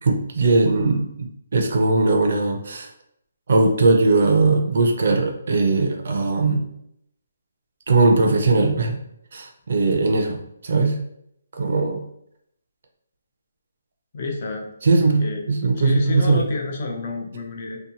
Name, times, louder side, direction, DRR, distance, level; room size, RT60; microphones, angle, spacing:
voice 1, 0.0-2.9 3.5-6.7 7.9-9.0 9.3-11.0 11.5-12.0 14.8-16.4, right 3 dB, 45° right, 3 dB, 0.4 m, -19 dB
voice 2, 14.1-14.7 15.2-15.4 15.8-17.8, left 3 dB, 30° left, 2 dB, 0.3 m, -28 dB
2.7 x 2.1 x 2.7 m, 0.74 s
hypercardioid pair, 175°, 0 cm